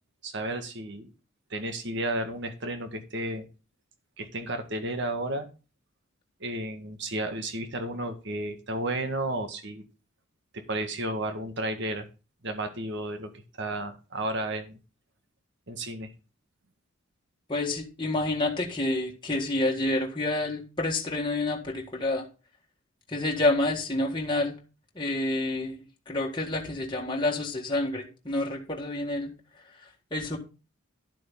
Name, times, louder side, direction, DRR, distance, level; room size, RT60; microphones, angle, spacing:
voice 1, 0.2-1.1 1.5-3.5 4.2-5.5 6.4-9.8 10.5-12.1 12.4-13.3 13.6-14.8 15.7-16.1, right 1 dB, 55° right, 1.7 m, -32 dB
voice 2, 17.5-22.3 23.1-24.5 24.9-29.3 30.1-30.4, left 2 dB, 20° left, 1.7 m, -28 dB
11.5 x 7.6 x 3.8 m
head